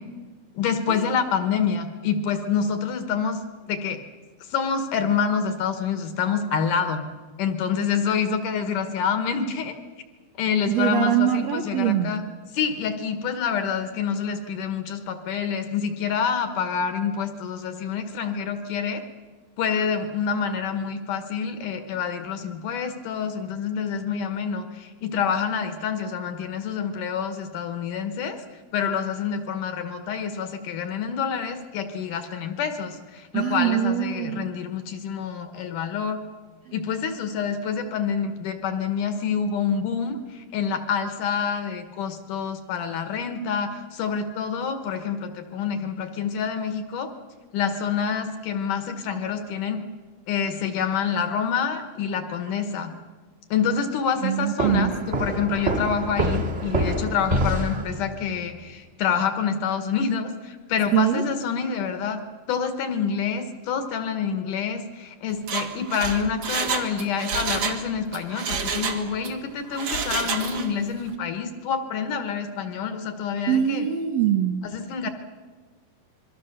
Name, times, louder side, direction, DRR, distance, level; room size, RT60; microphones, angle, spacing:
voice 1, 0.6-3.4 3.7-4.0 4.5-7.0 7.4-9.7 10.4-12.2 12.5-19.0 19.6-28.4 28.7-36.2 36.7-47.1 47.5-49.8 50.3-52.9 53.5-62.2 62.5-73.9 74.6-75.1, left 6 dB, 65° left, 8 dB, 2.5 m, -27 dB
voice 2, 10.7-12.1 33.3-34.5 36.7-36.8 54.2-54.9 60.9-61.2 73.5-74.6, right 10 dB, 70° right, 4 dB, 1.6 m, -23 dB
sound 1, 54.6-58.3, right 1 dB, 25° right, 1.7 m, -26 dB
Mechanisms, 65.3-67.8 68.1-69.3 69.7-70.8 71.1-71.2, right 5 dB, 50° right, 2.0 m, -29 dB
26.5 x 22.5 x 6.7 m, 1.4 s
omnidirectional pair, 4.4 m